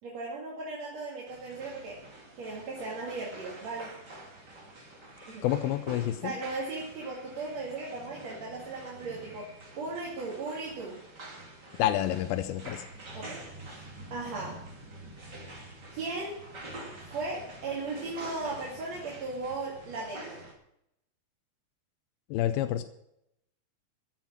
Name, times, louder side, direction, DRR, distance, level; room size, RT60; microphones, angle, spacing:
voice 1, 0.0-2.0 2.4-3.9 5.3-5.4 6.2-9.5 9.8-11.0 13.1-13.4 14.1-14.6 15.9-16.4 17.1-20.4, right 3 dB, 50° right, -4 dB, 3.3 m, -37 dB
sound 1, 1.3-20.5, right 1 dB, 30° right, 3.0 m, -47 dB
voice 2, 5.4-6.3 11.8-12.9 22.3-22.8, left 12 dB, 85° left, 9 dB, 2.6 m, -28 dB
14.5 x 7.7 x 7.4 m, 0.80 s
omnidirectional pair, 4.3 m